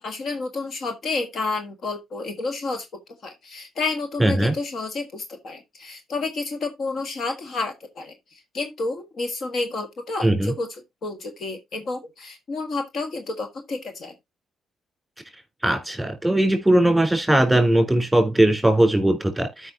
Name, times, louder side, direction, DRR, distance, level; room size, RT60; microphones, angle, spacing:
voice 1, 0.0-2.9 3.2-10.7 11.0-14.1, left 3 dB, 60° left, 1.6 m, -30 dB
voice 2, 4.2-4.5 10.2-10.5 15.6-19.7, right 1 dB, 5° right, 3.6 m, -19 dB
13.0 x 5.4 x 2.7 m
cardioid pair, 90°, 0 cm